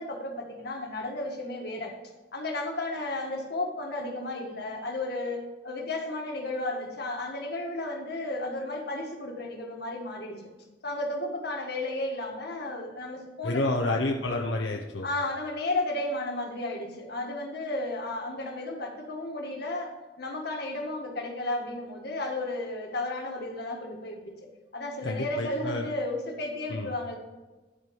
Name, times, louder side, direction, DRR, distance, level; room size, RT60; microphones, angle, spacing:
voice 1, 0.0-1.9 2.3-10.4 10.8-13.7 15.0-24.2 24.7-27.2, left 2 dB, 60° left, 1 dB, 1.8 m, -33 dB
voice 2, 13.4-15.1 25.0-25.9 26.7-26.9, left 2 dB, 85° left, 0 dB, 0.8 m, -29 dB
11.5 x 4.6 x 6.4 m, 1.2 s
head